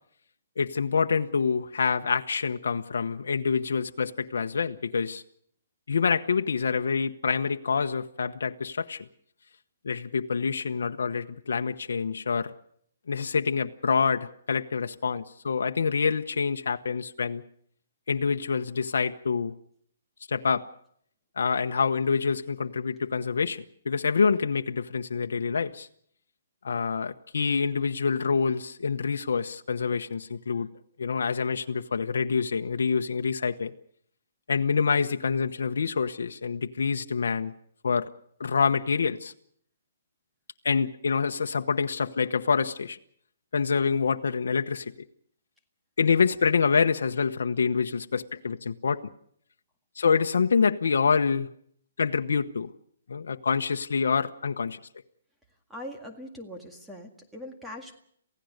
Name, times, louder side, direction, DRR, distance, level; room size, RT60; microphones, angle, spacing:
voice 1, 0.6-5.2 5.9-9.1 9.8-12.5 13.1-17.4 18.1-19.5 20.3-20.6 21.4-25.9 26.6-30.7 31.0-33.7 34.5-37.5 37.8-38.1 38.4-39.3 40.6-43.0 43.5-44.9 46.0-49.0 50.0-51.5 52.0-52.7 53.1-54.8, left 5 dB, 80° left, 6 dB, 1.0 m, -26 dB
voice 2, 55.7-57.9, left 1 dB, 5° right, 2 dB, 1.9 m, -41 dB
28.0 x 16.0 x 6.6 m, 0.66 s
hypercardioid pair, 165°, 0 cm